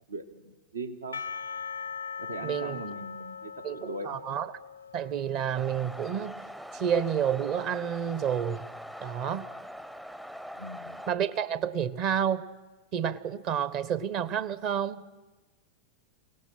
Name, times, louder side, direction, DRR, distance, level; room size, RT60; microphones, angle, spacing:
voice 1, 0.1-1.2 2.2-4.2 10.6-11.0, right 2 dB, 75° right, 1.1 m, -40 dB
Percussion / Church bell, 1.1-6.4, left 6 dB, 75° left, 0.6 m, -40 dB
voice 2, 2.4-2.8 3.6-4.5 4.9-6.4 6.7-8.7 9.0-9.5 11.1-12.5 12.9-15.0, right 8 dB, 40° right, 0.9 m, -30 dB
sound 1, 5.6-11.1, equal, 5° right, 0.6 m, -42 dB
29.0 x 18.0 x 5.8 m
figure-of-eight pair, 90°, 0 cm